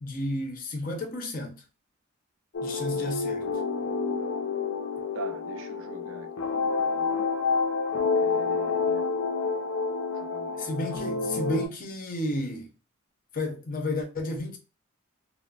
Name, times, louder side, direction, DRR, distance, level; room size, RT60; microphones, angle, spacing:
voice 1, 0.0-1.6 2.6-3.4 10.6-12.7 13.3-14.6, left 1 dB, 40° left, 0.6 m, -32 dB
sound 1, 2.5-11.7, left 4 dB, 85° left, 0.5 m, -28 dB
voice 2, 5.1-7.3 8.1-9.0 10.1-10.8, right 4 dB, 70° right, 0.5 m, -44 dB
3.0 x 2.0 x 2.3 m
head